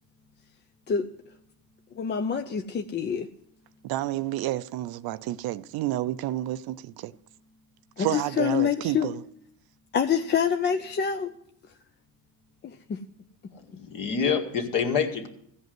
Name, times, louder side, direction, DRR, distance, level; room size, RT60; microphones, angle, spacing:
voice 1, 2.0-3.3 8.0-9.1 9.9-11.3 12.6-13.0, left 7 dB, 25° left, 0.5 m, -26 dB
voice 2, 3.8-7.1 8.0-9.2, right 14 dB, 60° right, 0.5 m, -30 dB
voice 3, 13.5-15.3, left 6 dB, 50° left, 2.2 m, -27 dB
15.5 x 5.3 x 9.4 m
cardioid pair, 130°, 42 cm